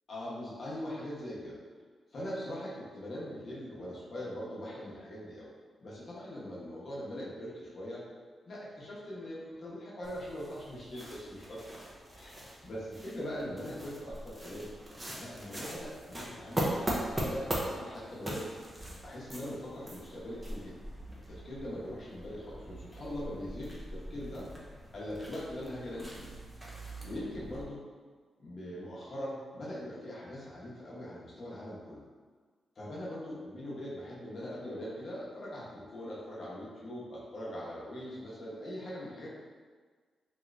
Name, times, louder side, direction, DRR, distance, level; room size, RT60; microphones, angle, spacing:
voice 1, 0.1-1.6 2.1-5.5 5.8-8.0 8.4-11.9 12.1-14.7 15.2-18.5 19.0-20.8 21.3-24.5 24.9-26.3 27.0-27.8 28.4-32.0 32.8-39.3, equal, 45° left, -7 dB, 0.9 m, -41 dB
sound 1, 10.0-27.7, right 1 dB, 10° right, 0.5 m, -41 dB
2.9 x 2.5 x 3.2 m, 1.5 s
wide cardioid pair, 155°, 0 cm